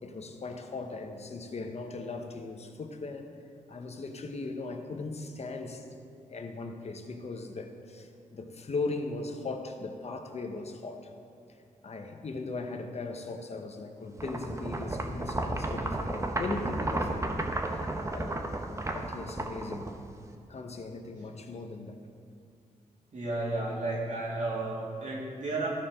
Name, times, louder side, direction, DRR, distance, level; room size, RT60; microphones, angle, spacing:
voice 1, 0.0-3.3 3.7-5.9 6.3-11.1 11.8-17.8 18.1-18.4 18.9-19.9 20.5-22.0, left 3 dB, 50° left, 5 dB, 0.9 m, -38 dB
sound 1, 14.2-20.3, right 2 dB, 20° right, 0.9 m, -33 dB
voice 2, 23.1-25.7, right 2 dB, 60° right, -4 dB, 2.4 m, -33 dB
13.0 x 4.4 x 5.1 m, 2.4 s
cardioid pair, 55°, 14 cm